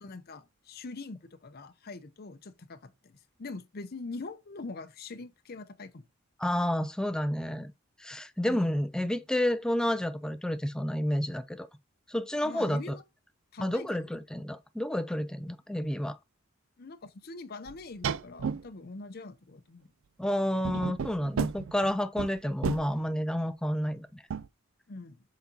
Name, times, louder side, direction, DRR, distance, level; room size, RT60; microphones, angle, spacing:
voice 1, 0.0-6.1 8.4-8.6 12.4-13.0 13.5-13.9 16.8-19.9 24.9-25.2, left 3 dB, 50° left, 0.6 m, -43 dB
voice 2, 6.4-7.7 8.0-11.7 12.1-13.0 13.6-16.2 20.2-24.2, left 1 dB, 5° left, 0.5 m, -30 dB
sound 1, 17.7-17.8 18.0-18.7 20.6-22.9 24.3-24.5, right 6 dB, 70° right, 0.4 m, -32 dB
6.9 x 4.1 x 4.1 m
head